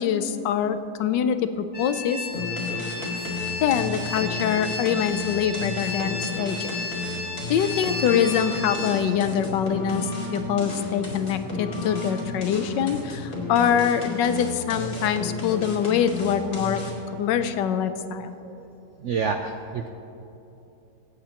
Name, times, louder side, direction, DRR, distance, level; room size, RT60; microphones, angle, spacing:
voice 1, 0.0-2.3 3.6-6.7 7.5-16.8 17.2-18.3, left 8 dB, 90° left, 10 dB, 1.3 m, -24 dB
sound 1, 1.7-9.0, left 3 dB, 25° left, 1.0 m, -33 dB
sound 2, 2.3-17.1, left 2 dB, 55° left, 2.7 m, -33 dB
voice 2, 19.0-19.9, right 5 dB, 80° right, 5 dB, 0.6 m, -30 dB
24.0 x 8.1 x 2.9 m, 2.9 s
omnidirectional pair, 1.9 m